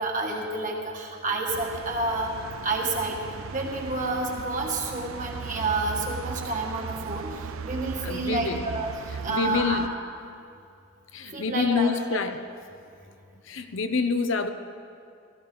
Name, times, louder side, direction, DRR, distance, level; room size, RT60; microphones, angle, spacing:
voice 1, 0.0-2.3 2.6-3.2 3.5-8.9 9.2-9.9 11.3-12.2, right 2 dB, 40° right, 0 dB, 1.7 m, -29 dB
sound 1, 1.5-9.9, right 6 dB, 85° right, 0.4 m, -37 dB
voice 2, 8.0-8.6 9.3-9.9 11.1-12.4 13.5-14.5, left 4 dB, 70° left, 8 dB, 0.7 m, -26 dB
16.0 x 16.0 x 3.9 m, 2.4 s
head